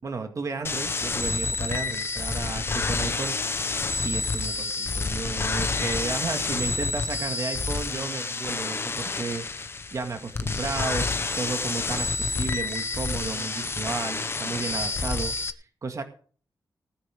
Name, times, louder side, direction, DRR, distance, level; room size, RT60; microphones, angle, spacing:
voice 1, 0.0-3.3 4.0-16.0, right 4 dB, 50° right, 6 dB, 2.1 m, -33 dB
sound 1, 0.6-15.5, left 3 dB, 35° left, 1.0 m, -29 dB
19.5 x 10.0 x 3.7 m, 0.43 s
wide cardioid pair, 150°, 7 cm